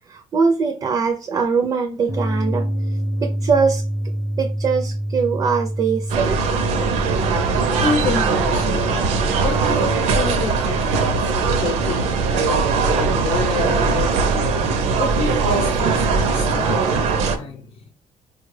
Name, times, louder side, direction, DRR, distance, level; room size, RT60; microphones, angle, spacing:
voice 1, 0.1-2.7 3.2-3.8 4.4-6.4, right 5 dB, 35° right, 6 dB, 0.4 m, -21 dB
sound 1, 2.1-15.0, equal, 15° left, 0.5 m, -29 dB
sound 2, 6.1-17.4, right 4 dB, 85° right, 0.6 m, -20 dB
voice 2, 6.8-7.2 7.8-11.3 11.6-17.9, left 4 dB, 55° left, 4 dB, 0.7 m, -29 dB
4.3 x 2.3 x 3.1 m, 0.36 s
cardioid pair, 140°, 11 cm